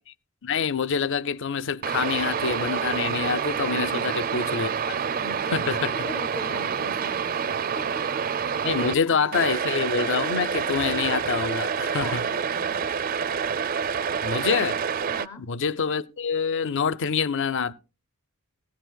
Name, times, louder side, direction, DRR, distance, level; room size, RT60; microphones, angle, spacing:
voice 1, 0.4-5.0 5.5-5.9 8.6-12.2 14.2-14.8 15.5-17.7, left 6 dB, 60° left, 0.6 m, -26 dB
sound 1, 1.8-8.9 9.3-15.3, right 6 dB, 40° right, 0.5 m, -27 dB
voice 2, 3.7-4.4 5.1-9.5 11.9-12.9 15.1-15.5, left 2 dB, 15° left, 0.5 m, -41 dB
16.5 x 13.0 x 2.2 m
head